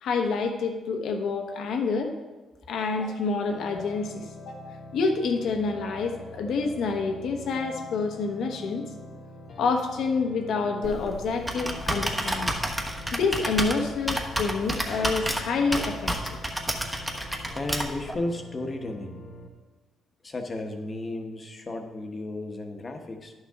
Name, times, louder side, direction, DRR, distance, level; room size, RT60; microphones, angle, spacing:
voice 1, 0.0-2.1 2.7-4.7 4.9-8.9 9.6-12.5 13.1-16.4, left 4 dB, 75° left, 4 dB, 1.1 m, -28 dB
sound 1, 3.5-19.5, left 1 dB, 50° left, 1.2 m, -44 dB
Computer keyboard, 10.8-18.1, right 1 dB, 10° right, 1.2 m, -30 dB
voice 2, 17.5-19.3 20.2-23.3, left 2 dB, 30° left, 4 dB, 1.1 m, -34 dB
11.0 x 6.6 x 3.6 m, 1.2 s
cardioid pair, 90°, 0 cm